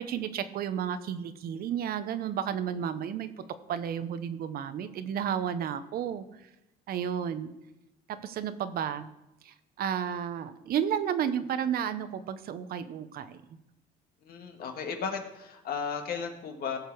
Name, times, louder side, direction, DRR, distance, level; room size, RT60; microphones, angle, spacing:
voice 1, 0.0-3.3 3.7-6.3 6.9-7.5 8.2-9.1 9.4-13.4, right 8 dB, 65° right, 11 dB, 0.9 m, -32 dB
voice 2, 14.2-16.8, left 6 dB, 65° left, 4 dB, 1.8 m, -35 dB
16.5 x 6.6 x 4.7 m, 0.95 s
cardioid pair, 110°, 17 cm